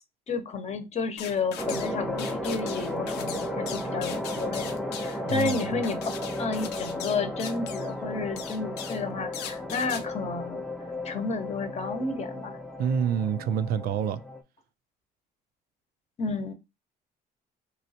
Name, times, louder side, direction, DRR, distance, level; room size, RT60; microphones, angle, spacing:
voice 1, 0.3-4.7 5.0-6.0 6.4-10.6 11.0-12.6 16.2-16.5, left 4 dB, 40° left, 0.8 m, -31 dB
sound 1, 1.2-1.9 2.2-7.9 8.4-9.0 9.3-10.0, left 8 dB, 80° left, 0.6 m, -40 dB
sound 2, 1.6-14.4, left 1 dB, ahead, 0.6 m, -34 dB
voice 2, 5.2-5.8 12.8-14.2, right 8 dB, 65° right, 0.4 m, -27 dB
3.0 x 3.0 x 2.8 m
cardioid pair, 110°, 17 cm